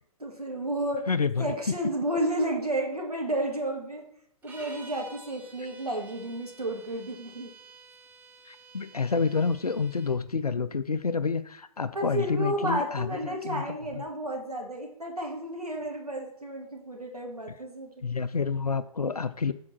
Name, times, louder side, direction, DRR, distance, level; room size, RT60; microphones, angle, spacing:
voice 1, 0.2-1.1 1.4-4.0 4.4-7.5 11.9-17.9, right 1 dB, 90° right, 0 dB, 2.2 m, -32 dB
voice 2, 1.1-1.5 8.5-13.6 18.0-19.5, left 5 dB, 90° left, 13 dB, 0.5 m, -28 dB
sound 1, 4.4-10.2, right 4 dB, 10° right, 1.3 m, -51 dB
7.4 x 4.9 x 6.1 m, 0.72 s
figure-of-eight pair, 115°, 19 cm